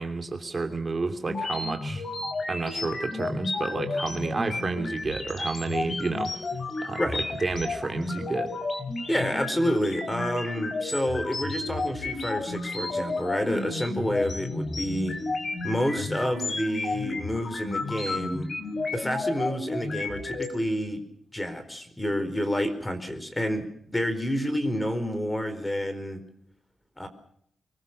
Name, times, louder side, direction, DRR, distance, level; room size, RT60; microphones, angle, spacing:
voice 1, 0.0-2.1 2.5-6.3 6.8-8.5, right 3 dB, 35° right, 5 dB, 2.9 m, -31 dB
sound 1, 1.3-20.5, left 2 dB, 50° left, 5.6 m, -32 dB
voice 2, 9.1-15.2 15.6-18.5 18.9-21.0 21.3-26.2 27.0-27.1, equal, 10° left, 9 dB, 4.5 m, -29 dB
24.5 x 21.5 x 6.6 m, 0.67 s
wide cardioid pair, 105°, 0 cm